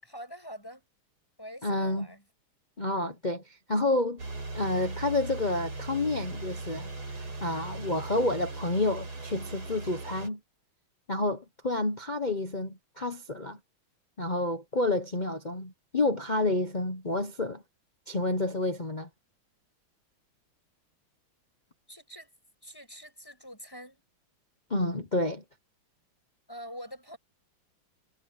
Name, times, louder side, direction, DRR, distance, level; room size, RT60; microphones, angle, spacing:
voice 1, 0.0-0.9 1.4-2.2 21.9-22.3 22.6-24.0 26.5-27.2, equal, 10° left, 7.8 m, -45 dB
voice 2, 1.6-2.1 2.8-3.4 3.7-4.2 4.5-6.9 7.4-10.4 11.1-13.6 14.2-17.6 18.1-19.1 24.7-25.4, left 2 dB, 35° left, 0.7 m, -29 dB
sound 1, 4.2-10.3, right 3 dB, 85° right, 6.6 m, -39 dB
omnidirectional pair, 2.3 m